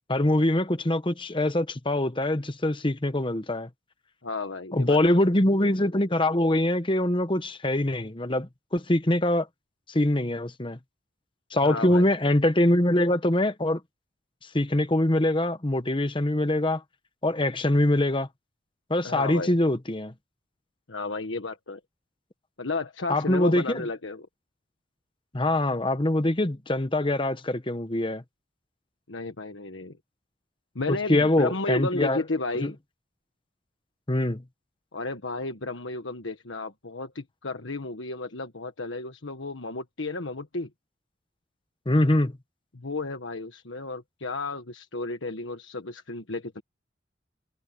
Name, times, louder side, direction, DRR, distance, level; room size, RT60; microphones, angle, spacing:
voice 1, 0.1-3.7 4.7-9.5 9.9-10.8 11.5-13.8 14.5-16.8 17.2-18.3 18.9-20.1 23.1-23.9 25.3-28.2 30.9-32.2 32.6-32.7 34.1-34.4 41.9-42.3, left 1 dB, 25° left, 1.2 m, -24 dB
voice 2, 4.2-5.2 11.6-12.1 19.0-19.5 20.9-21.8 22.6-24.3 29.1-30.0 30.7-32.8 34.9-40.7 42.7-46.6, left 3 dB, 85° left, 1.5 m, -33 dB
head